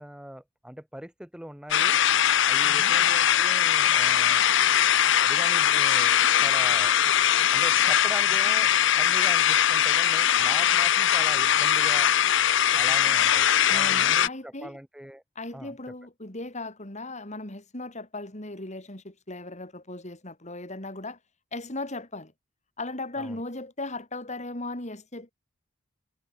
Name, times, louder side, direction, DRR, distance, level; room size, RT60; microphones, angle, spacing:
voice 1, 0.0-2.0 2.5-4.4 5.2-6.9 7.5-12.1 12.7-15.2 15.5-15.7 23.2-23.4, equal, 5° right, 1.2 m, -41 dB
sound 1, 1.7-14.3, left 10 dB, 65° left, 0.7 m, -21 dB
voice 2, 2.6-3.0 13.7-14.8 15.4-21.2 21.5-22.3 22.8-25.3, left 2 dB, 35° left, 3.9 m, -37 dB
head